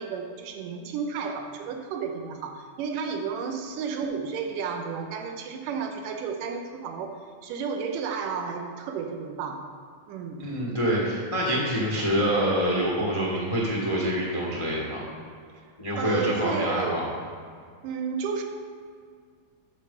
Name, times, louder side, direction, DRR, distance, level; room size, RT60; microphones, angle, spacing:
voice 1, 0.0-7.2 7.4-9.7 10.1-10.4 16.0-17.1 17.8-18.4, right 6 dB, 90° right, 4 dB, 2.4 m, -32 dB
voice 2, 10.4-15.0 15.8-17.0, equal, 40° left, -4 dB, 0.4 m, -26 dB
8.8 x 6.7 x 4.9 m, 2.1 s
omnidirectional pair, 3.7 m